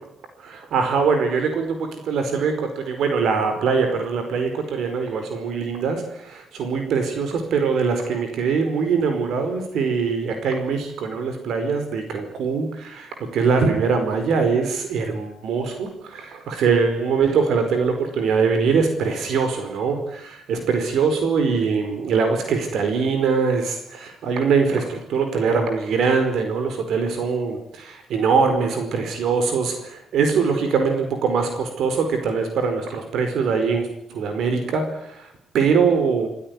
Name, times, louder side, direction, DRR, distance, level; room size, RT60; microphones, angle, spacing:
voice 1, 0.4-36.3, right 5 dB, 85° right, 6 dB, 4.8 m, -22 dB
27.5 x 16.5 x 9.7 m, 0.71 s
cardioid pair, 130°, 0 cm